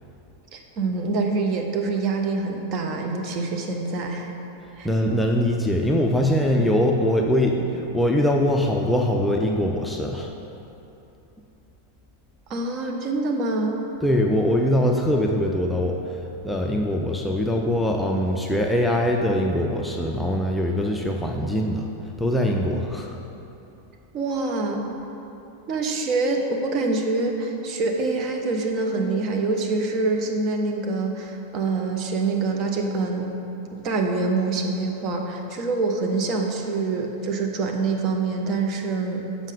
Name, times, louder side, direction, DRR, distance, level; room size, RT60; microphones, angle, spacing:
voice 1, 0.5-4.3 4.8-4.9 12.5-13.8 24.1-24.8 25.7-33.4 33.8-39.2, right 3 dB, 35° right, 2 dB, 0.8 m, -25 dB
voice 2, 4.8-10.3 14.0-21.9 22.2-23.2, equal, 5° left, 0 dB, 0.5 m, -22 dB
7.3 x 5.0 x 5.2 m, 2.9 s
figure-of-eight pair, 90°, 0 cm